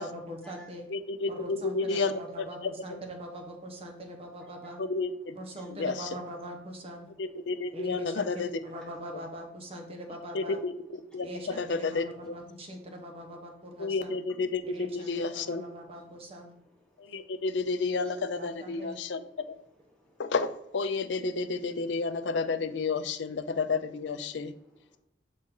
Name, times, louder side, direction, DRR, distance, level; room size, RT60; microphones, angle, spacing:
voice 1, 0.0-0.9 1.3-4.8 5.3-7.1 7.7-8.2 8.6-10.6 11.2-14.1 14.6-16.5 18.4-19.0, equal, 35° right, 2 dB, 1.1 m, -42 dB
voice 2, 0.9-3.0 4.8-5.4 5.7-6.1 7.2-8.5 10.3-12.4 13.8-15.6 17.0-19.2 20.2-24.5, left 4 dB, 70° left, 11 dB, 0.5 m, -31 dB
voice 3, 13.6-13.9 15.0-15.1 16.1-17.4 18.0-18.1 18.9-19.1 19.5-19.6 19.9-20.2 24.3-25.0, equal, 5° left, -4 dB, 1.4 m, -57 dB
6.4 x 4.2 x 3.7 m, 0.80 s
head